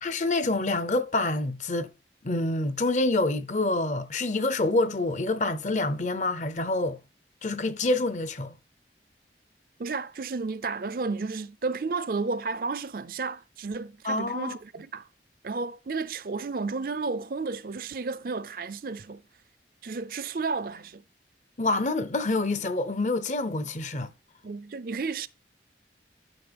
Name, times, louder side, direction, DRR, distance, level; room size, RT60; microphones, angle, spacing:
voice 1, 0.0-1.9 2.2-7.0 7.4-8.5 14.0-14.6 21.6-24.1, left 2 dB, 45° left, 0.7 m, -27 dB
voice 2, 9.8-15.1 15.4-19.2 19.8-21.0 24.4-25.3, right 4 dB, 55° right, 0.5 m, -32 dB
12.0 x 5.2 x 3.5 m
head